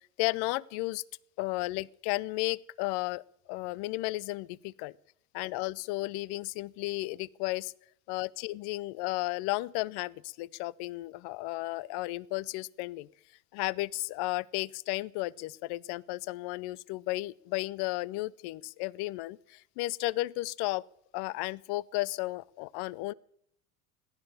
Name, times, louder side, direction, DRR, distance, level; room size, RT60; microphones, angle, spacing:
voice 1, 0.2-1.0 1.4-4.9 5.3-7.7 8.1-13.1 13.5-20.8 21.1-23.1, left 20 dB, 55° left, 23 dB, 0.6 m, -34 dB
16.0 x 10.5 x 6.9 m, 0.67 s
supercardioid pair, 100°, 47 cm